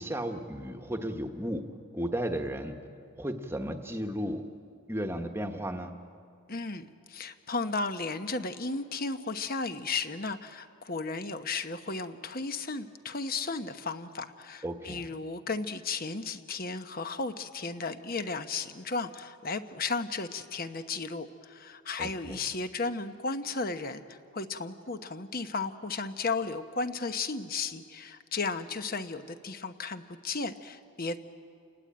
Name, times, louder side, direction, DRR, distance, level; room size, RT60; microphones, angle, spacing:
voice 1, 0.0-1.7 1.9-2.8 3.2-4.4 4.9-6.0 14.6-15.0 22.0-22.4, equal, 10° right, 5 dB, 1.2 m, -34 dB
voice 2, 6.5-31.2, left 4 dB, 40° left, 9 dB, 1.0 m, -34 dB
29.5 x 19.5 x 8.8 m, 2.4 s
head